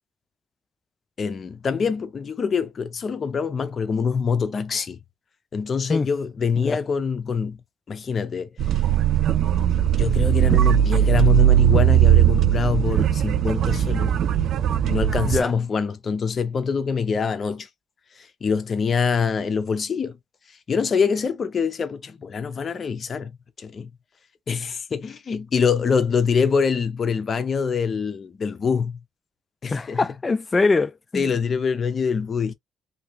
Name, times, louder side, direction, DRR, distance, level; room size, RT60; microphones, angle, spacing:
voice 1, 1.2-5.0 5.5-7.6 7.9-8.5 9.9-14.2 14.9-17.7 18.2-20.2 20.7-23.9 24.5-29.0 29.6-30.0 31.1-32.5, left 6 dB, 45° left, 0.7 m, -25 dB
sound 1, 8.6-15.4, right 11 dB, 70° right, 0.4 m, -19 dB
voice 2, 15.2-15.5 29.7-31.3, left 3 dB, 25° left, 0.4 m, -23 dB
2.9 x 2.8 x 2.9 m
cardioid pair, 90°, 0 cm